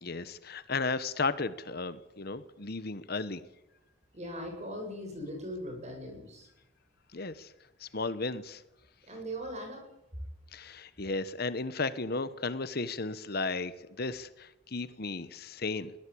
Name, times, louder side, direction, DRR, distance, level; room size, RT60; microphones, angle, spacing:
voice 1, 0.0-3.4 7.1-7.5 7.8-8.6 10.5-13.7 14.0-15.9, left 3 dB, 50° left, 14 dB, 1.1 m, -34 dB
voice 2, 4.1-6.5 9.1-9.8, equal, 35° right, 3 dB, 7.8 m, -39 dB
22.5 x 18.0 x 8.7 m, 0.93 s
head